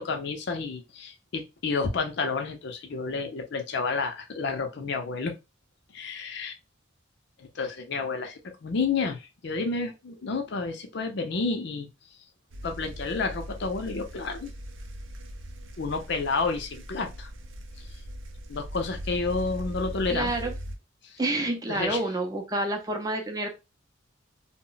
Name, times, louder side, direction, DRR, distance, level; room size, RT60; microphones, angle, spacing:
voice 1, 0.0-5.3 5.9-6.5 7.4-11.9 12.6-14.5 15.8-17.3 18.5-20.3 21.0-21.2 21.7-22.0, left 4 dB, 60° left, 0.5 m, -30 dB
sound 1, 12.5-20.8, equal, 85° right, 0.5 m, -40 dB
voice 2, 20.1-20.5 21.2-23.5, right 2 dB, 20° right, 0.5 m, -28 dB
2.1 x 2.0 x 3.7 m
head